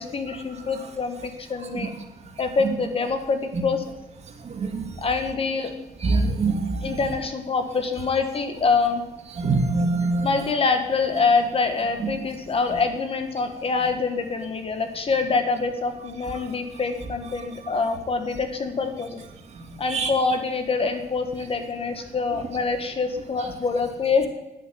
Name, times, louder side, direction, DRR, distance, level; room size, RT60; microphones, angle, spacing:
voice 1, 0.0-1.9 2.4-3.8 5.0-5.7 6.8-9.0 10.2-19.2 19.8-24.3, left 4 dB, 35° left, 7 dB, 1.6 m, -25 dB
voice 2, 4.4-4.9 6.0-7.2 9.4-10.5 12.0-12.1 12.7-12.8 19.9-20.4 23.4-23.5, right 3 dB, 40° right, 4 dB, 2.3 m, -25 dB
10.5 x 8.9 x 9.3 m, 0.97 s
cardioid pair, 110°, 17 cm